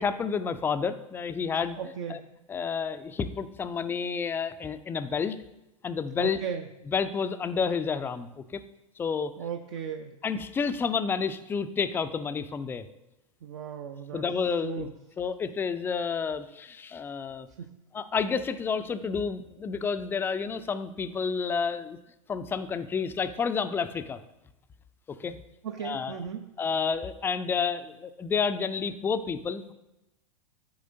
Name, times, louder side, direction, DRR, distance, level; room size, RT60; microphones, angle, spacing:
voice 1, 0.0-1.8 2.1-2.2 2.5-5.4 5.8-6.4 6.9-8.6 9.0-9.3 10.2-12.9 14.1-14.9 15.2-17.5 17.9-22.0 22.3-24.2 25.2-25.4 25.8-26.2 26.6-29.7, left 5 dB, 10° left, 11 dB, 0.4 m, -30 dB
voice 2, 1.8-2.2 6.2-6.7 9.4-10.2 13.4-14.2 14.6-14.9 17.6-17.8 25.6-26.5, right 7 dB, 55° right, 4 dB, 0.6 m, -36 dB
12.5 x 4.9 x 2.7 m, 0.91 s
figure-of-eight pair, 90°, 18 cm